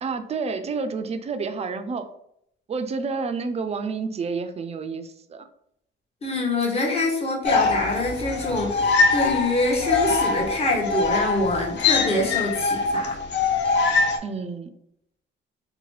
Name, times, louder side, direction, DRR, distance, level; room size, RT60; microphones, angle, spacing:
voice 1, 0.0-2.1 2.7-5.5 14.2-14.7, right 4 dB, 35° right, 9 dB, 0.3 m, -29 dB
voice 2, 6.2-13.1, left 2 dB, 30° left, -1 dB, 0.9 m, -25 dB
sound 1, 7.4-14.2, left 4 dB, 60° left, 0.5 m, -23 dB
2.8 x 2.1 x 3.1 m, 0.74 s
cardioid pair, 90°, 20 cm